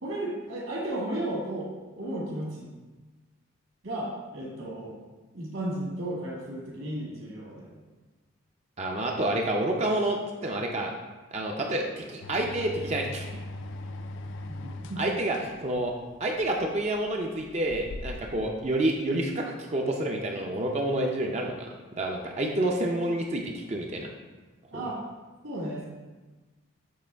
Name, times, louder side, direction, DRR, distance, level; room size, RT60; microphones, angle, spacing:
voice 1, 0.0-1.7 1.9-2.7 3.8-4.9 5.3-7.8 14.5-15.0 24.7-25.0 25.4-25.8, right 1 dB, 70° right, -4 dB, 1.9 m, -34 dB
voice 2, 8.8-10.9 11.3-13.3 15.0-15.9 16.2-24.1 24.7-24.8, right 1 dB, 30° right, 1 dB, 0.4 m, -29 dB
sound 1, 12.2-18.5, left 2 dB, 60° left, 0.4 m, -40 dB
7.5 x 3.7 x 3.4 m, 1.2 s
head